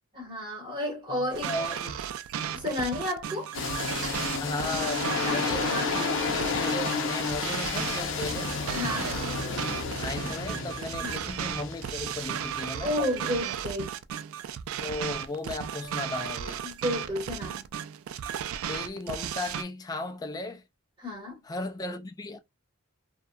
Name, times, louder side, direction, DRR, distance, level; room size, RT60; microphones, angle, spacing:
voice 1, 0.1-1.5 2.5-3.5 5.2-5.9 8.7-9.2 11.0-11.2 12.8-14.0 16.6-17.7 21.0-21.4, left 1 dB, 20° right, 1.5 m, -32 dB
voice 2, 1.1-2.0 4.4-8.6 10.0-13.0 14.8-16.6 18.7-20.6 21.5-22.4, left 2 dB, 20° left, 0.3 m, -36 dB
sound 1, 1.3-19.6, right 9 dB, 70° right, 0.3 m, -35 dB
sound 2, 3.5-13.4, left 4 dB, 60° left, 0.6 m, -32 dB
2.7 x 2.2 x 2.3 m
head